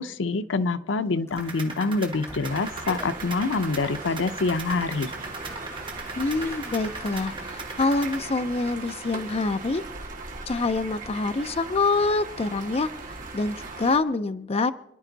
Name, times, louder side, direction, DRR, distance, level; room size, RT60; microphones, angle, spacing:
voice 1, 0.0-5.1, left 3 dB, 85° left, 12 dB, 0.7 m, -26 dB
Vehicle, 1.1-10.5, equal, 15° left, 2.6 m, -48 dB
sound 1, 1.4-8.2, right 3 dB, 25° right, 1.7 m, -39 dB
sound 2, 2.4-14.0, right 3 dB, 45° right, 2.2 m, -39 dB
voice 2, 6.2-9.8 10.5-12.9 13.3-14.7, left 3 dB, 35° left, 11 dB, 0.5 m, -26 dB
27.5 x 11.0 x 4.0 m, 0.91 s
head